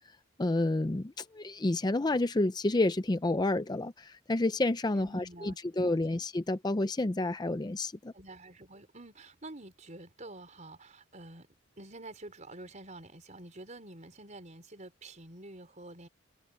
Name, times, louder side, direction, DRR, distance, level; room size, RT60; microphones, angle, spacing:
voice 1, 0.4-8.1, left 2 dB, 20° left, 0.5 m, -29 dB
voice 2, 4.9-5.6 5.8-6.2 8.1-11.5 11.8-16.1, right 2 dB, 40° right, 5.0 m, -48 dB
head